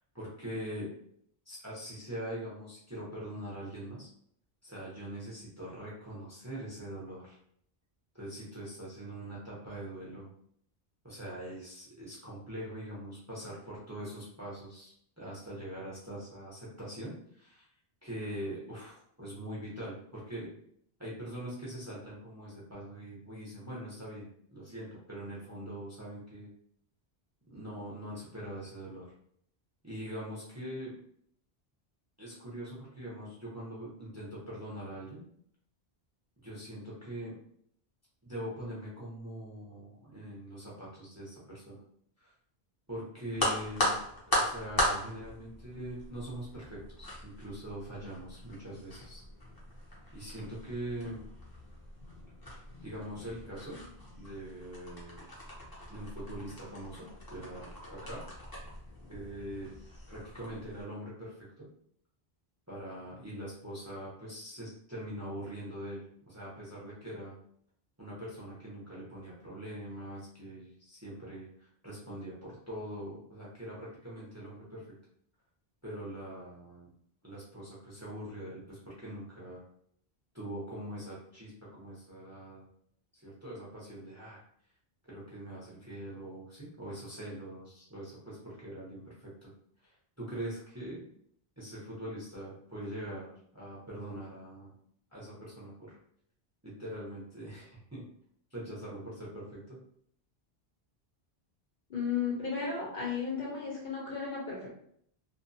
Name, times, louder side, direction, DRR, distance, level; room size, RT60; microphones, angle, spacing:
voice 1, 0.1-0.9 1.5-4.1 4.6-7.4 8.1-10.3 11.0-17.7 18.0-20.5 21.0-26.5 27.5-29.1 29.8-30.9 32.2-35.2 36.4-37.3 38.2-41.8 42.2-42.3 42.9-44.0 44.3-49.2 50.1-51.2 52.8-53.8 54.1-55.3 55.9-58.2 59.1-59.7 60.1-61.7 62.7-67.4 68.0-74.8 75.8-76.9 77.2-79.6 80.3-82.7 83.1-84.4 85.1-89.5 89.8-91.0 91.6-94.7 95.1-96.0 96.6-98.0 98.5-99.8, right 1 dB, 20° right, -6 dB, 0.6 m, -43 dB
sound 1, 43.3-60.8, left 1 dB, 25° left, 0.6 m, -38 dB
voice 2, 101.9-104.7, left 5 dB, 55° left, -4 dB, 0.8 m, -34 dB
2.5 x 2.1 x 2.6 m, 0.65 s
omnidirectional pair, 1.0 m